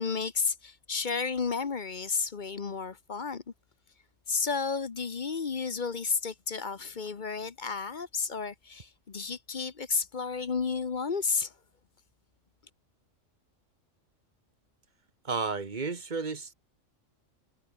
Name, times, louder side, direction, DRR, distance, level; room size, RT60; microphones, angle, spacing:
voice 1, 0.0-3.4 4.3-11.5, left 5 dB, 40° left, 1.0 m, -32 dB
voice 2, 15.2-16.5, right 4 dB, 35° right, 1.6 m, -32 dB
omnidirectional pair, 1.3 m